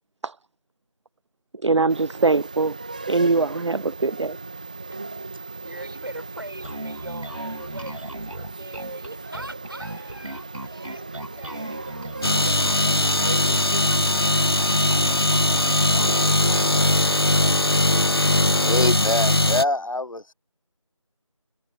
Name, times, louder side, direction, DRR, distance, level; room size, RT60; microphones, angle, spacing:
voice 1, 1.6-2.8 3.1-4.4, right 3 dB, 60° right, 0.4 m, -22 dB
sound 1, 1.9-17.0, right 3 dB, 15° right, 2.6 m, -38 dB
voice 2, 5.3-14.6 14.9-17.0, right 1 dB, 45° right, 5.1 m, -42 dB
Bass guitar, 6.6-16.2, right 1 dB, 85° right, 2.0 m, -37 dB
sound 2, 12.2-19.6, left 1 dB, 45° left, 0.5 m, -20 dB
voice 3, 18.5-20.2, left 2 dB, 80° left, 1.1 m, -24 dB
figure-of-eight pair, 175°, 17 cm